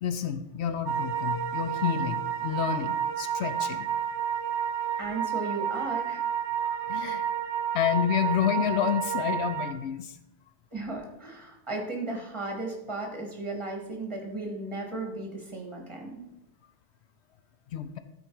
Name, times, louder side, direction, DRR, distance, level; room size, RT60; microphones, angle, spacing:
voice 1, 0.0-3.9 6.8-7.3 7.7-10.1 17.7-18.0, left 9 dB, 75° left, 11 dB, 0.8 m, -29 dB
sound 1, 0.9-9.7, right 9 dB, 80° right, 1.0 m, -30 dB
voice 2, 5.0-6.2 10.7-16.2, right 2 dB, 25° right, 1 dB, 1.7 m, -35 dB
13.0 x 4.5 x 4.6 m, 0.91 s
omnidirectional pair, 1.2 m